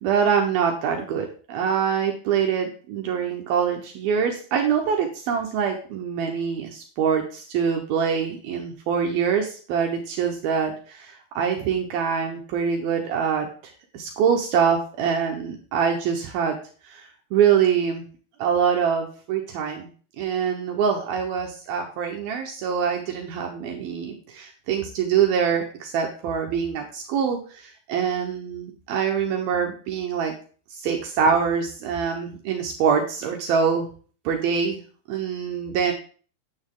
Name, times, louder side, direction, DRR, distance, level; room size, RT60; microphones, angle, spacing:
voice 1, 0.0-13.5 13.9-16.6 16.8-18.0 18.4-19.9 20.2-30.3 30.7-33.9 34.3-34.8 35.1-35.9, right 7 dB, 70° right, 2 dB, 2.8 m, -24 dB
9.7 x 8.7 x 3.8 m, 0.41 s
omnidirectional pair, 4.7 m